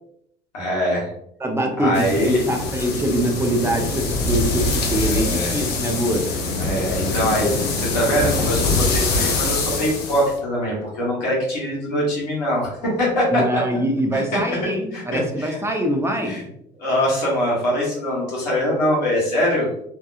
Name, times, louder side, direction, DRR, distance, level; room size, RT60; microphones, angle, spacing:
voice 1, 0.5-1.1 1.8-2.4 4.9-5.5 6.6-7.5 7.8-13.6 14.1-14.2 14.5-14.6 14.9-15.6 16.2-16.4 16.8-19.7, equal, 85° left, -5 dB, 1.2 m, -23 dB
voice 2, 1.4-6.3 13.3-16.4, right 1 dB, 10° right, 3 dB, 0.6 m, -23 dB
sound 1, 1.9-10.3, left 3 dB, 55° left, 0.7 m, -24 dB
2.8 x 2.3 x 2.4 m, 0.73 s
hypercardioid pair, 60°, 21 cm